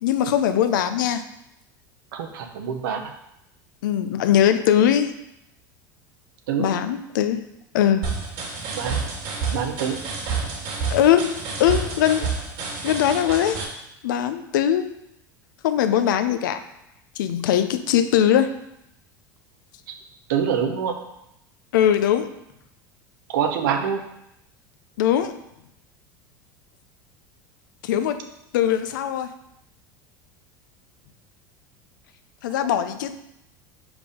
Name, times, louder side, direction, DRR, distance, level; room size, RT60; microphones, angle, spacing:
voice 1, 0.0-1.2 3.8-5.1 6.6-7.4 7.7-8.1 10.9-12.3 12.8-13.6 14.0-14.9 15.6-16.6 17.2-18.5 21.7-22.3 25.0-25.4 27.8-28.3 28.5-29.3 32.4-33.2, left 10 dB, 85° left, 10 dB, 0.6 m, -21 dB
voice 2, 2.1-3.0 6.5-6.7 8.8-9.0 9.5-9.9 20.3-20.9 23.3-24.0 32.6-32.7, right 7 dB, 85° right, 6 dB, 0.9 m, -25 dB
sound 1, 8.0-13.6, right 5 dB, 65° right, 2.3 m, -29 dB
5.3 x 4.9 x 4.9 m, 0.82 s
supercardioid pair, 100°, 10 cm